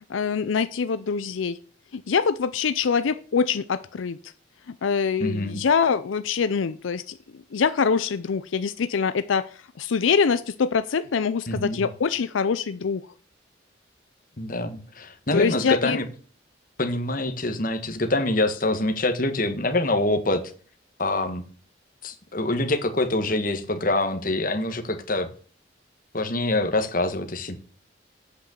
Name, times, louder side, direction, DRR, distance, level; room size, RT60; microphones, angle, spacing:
voice 1, 0.1-1.6 1.9-4.2 4.7-9.5 9.8-13.0 15.3-16.0, left 6 dB, 90° left, 13 dB, 0.5 m, -24 dB
voice 2, 5.2-5.6 11.5-11.9 14.4-16.0 16.8-20.4 21.0-21.4 22.0-25.3 26.1-27.6, left 2 dB, 45° left, 7 dB, 1.2 m, -25 dB
8.1 x 6.1 x 6.8 m, 0.42 s
head